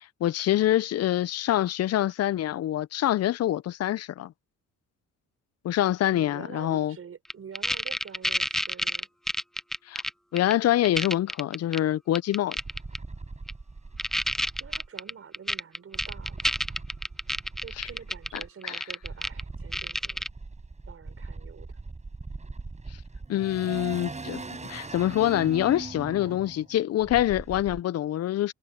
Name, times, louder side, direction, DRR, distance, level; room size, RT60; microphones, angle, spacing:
voice 1, 0.0-4.3 5.6-6.9 9.9-10.0 10.3-12.6 17.8-17.9 18.6-18.8 23.3-24.4 24.7-28.5, left 13 dB, 55° left, 0.5 m, -25 dB
voice 2, 6.1-9.1 14.6-16.6 17.6-20.3 20.9-21.8, right 7 dB, 45° right, 5.3 m, -46 dB
sound 1, 7.3-10.1 10.4-10.5 10.8-11.8 12.1-13.0 13.5-13.6 14.0-19.4 19.7-20.3, equal, ahead, 0.6 m, -29 dB
sound 2, 12.6-14.9 15.9-18.5 19.0-27.8, right 3 dB, 25° right, 7.3 m, -40 dB
cardioid pair, 90°, 30 cm